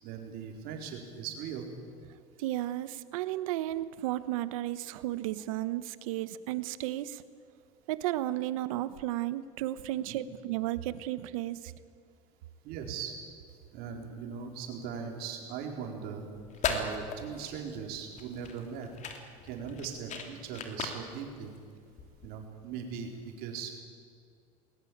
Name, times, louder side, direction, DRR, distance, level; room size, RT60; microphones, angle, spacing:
voice 1, 0.0-1.7 10.1-10.2 12.6-13.1 13.7-16.3 16.7-18.9 19.4-21.5 22.2-23.8, right 7 dB, 65° right, 2 dB, 4.2 m, -39 dB
voice 2, 2.4-7.2 7.9-11.7, right 14 dB, 85° right, 14 dB, 1.1 m, -33 dB
sound 1, 16.3-22.4, left 6 dB, 45° left, 3.4 m, -38 dB
20.5 x 20.0 x 8.8 m, 2.2 s
supercardioid pair, 105°, 17 cm